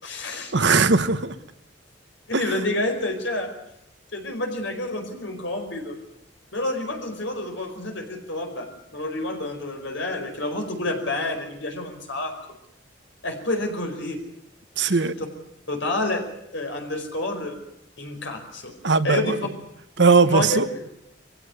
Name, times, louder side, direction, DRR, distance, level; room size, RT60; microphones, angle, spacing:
voice 1, 0.0-0.5 2.3-3.5 4.1-6.0 6.5-12.3 13.2-14.2 14.8-15.3 15.7-16.2 16.5-17.6 18.0-18.7 19.0-19.4 20.2-20.8, left 2 dB, 75° left, 3 dB, 5.1 m, -29 dB
voice 2, 0.5-1.3 14.8-15.1 18.8-19.3 20.0-20.6, right 4 dB, 65° right, 12 dB, 1.1 m, -19 dB
23.0 x 16.5 x 9.6 m, 0.82 s
head